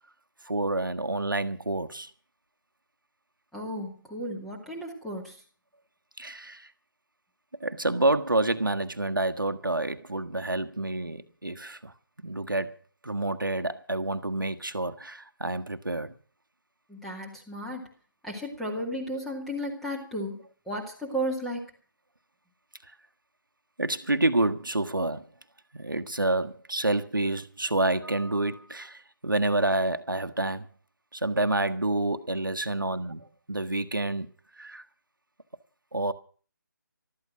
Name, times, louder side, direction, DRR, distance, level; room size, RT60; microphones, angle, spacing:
voice 1, 0.4-2.1 6.2-6.7 7.6-11.9 12.2-12.8 13.0-16.1 23.8-25.3 25.7-30.7 31.1-34.3 34.6-34.8 35.9-36.1, right 2 dB, 75° right, 1.5 m, -28 dB
voice 2, 3.5-5.4 16.9-17.8 18.2-20.4 20.7-21.6, equal, ahead, 2.1 m, -34 dB
14.5 x 13.5 x 6.1 m
figure-of-eight pair, 155°, 11 cm